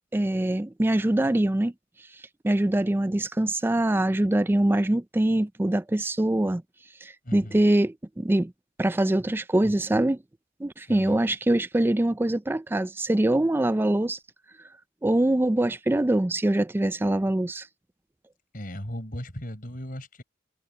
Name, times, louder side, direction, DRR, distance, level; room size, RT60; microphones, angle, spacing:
voice 1, 0.1-1.7 2.4-6.6 7.0-8.5 8.8-10.2 10.6-14.2 15.0-17.7, right 1 dB, 10° right, 0.3 m, -23 dB
voice 2, 7.2-7.7 10.9-11.2 18.5-20.2, equal, 45° left, 4.6 m, -37 dB
head